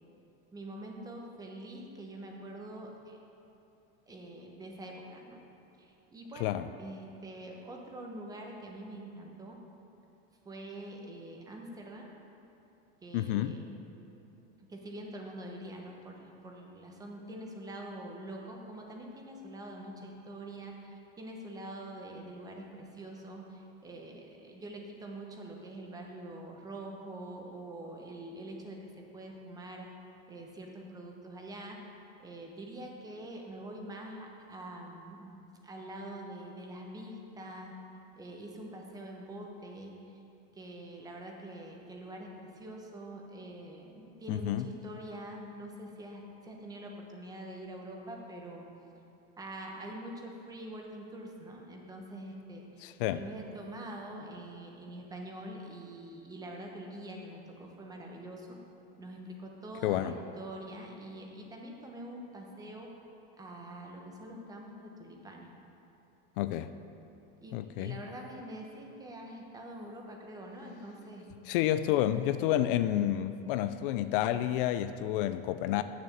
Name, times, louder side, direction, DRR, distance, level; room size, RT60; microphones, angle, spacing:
voice 1, 0.5-3.2 4.1-5.4 5.8-9.6 10.4-12.1 13.0-13.9 14.7-29.9 30.3-31.9 32.2-35.4 35.6-37.8 38.2-40.2 40.5-48.7 49.4-52.8 53.1-58.6 59.0-62.9 63.4-65.5 67.4-71.3, right 1 dB, 10° right, 1 dB, 0.9 m, -45 dB
voice 2, 13.1-13.6 44.3-44.7 52.8-53.2 59.8-60.2 66.4-66.7 67.5-68.0 71.5-75.8, left 12 dB, 60° left, 12 dB, 0.4 m, -30 dB
8.7 x 6.9 x 7.3 m, 2.9 s
supercardioid pair, 165°, 30 cm